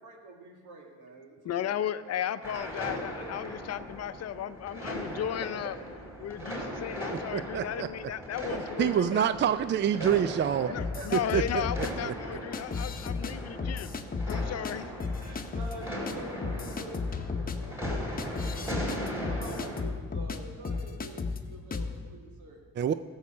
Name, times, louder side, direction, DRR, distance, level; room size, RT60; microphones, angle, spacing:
voice 1, 0.0-2.2 2.5-2.9 3.2-3.3 5.0-5.1 5.4-5.5 6.4-6.5 8.5-9.0 9.9-11.3 14.3-14.5 15.2-22.6, right 2 dB, 80° right, 2 dB, 2.1 m, -45 dB
voice 2, 1.4-5.8 6.2-9.3 10.7-13.9 14.3-14.8, left 10 dB, 55° left, 13 dB, 0.6 m, -35 dB
sound 1, 2.4-19.8, equal, 10° right, 4.2 m, -39 dB
voice 3, 7.3-7.9 8.8-10.7 11.1-12.1 22.8-22.9, right 9 dB, 40° right, 13 dB, 0.4 m, -27 dB
sound 2, 10.8-11.9 12.5-13.3 13.6-14.7 15.0-15.7 16.1-16.2 16.4-20.4 20.6-21.4 21.7-21.9, left 4 dB, 30° left, 0.9 m, -33 dB
15.0 x 7.3 x 6.2 m, 1.5 s
cardioid pair, 90°, 30 cm